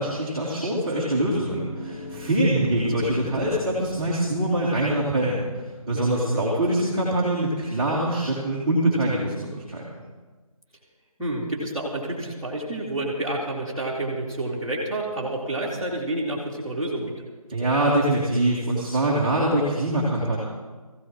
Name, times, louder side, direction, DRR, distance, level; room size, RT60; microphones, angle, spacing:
voice 1, 0.0-5.4 5.9-9.8 17.5-20.4, right 1 dB, 15° right, -10 dB, 2.0 m, -24 dB
sound 1, 1.1-6.9, left 2 dB, 45° left, 1.3 m, -40 dB
voice 2, 5.9-6.4 11.2-17.2, right 1 dB, ahead, -14 dB, 2.6 m, -29 dB
22.0 x 16.0 x 3.1 m, 1.3 s
figure-of-eight pair, 165°, 19 cm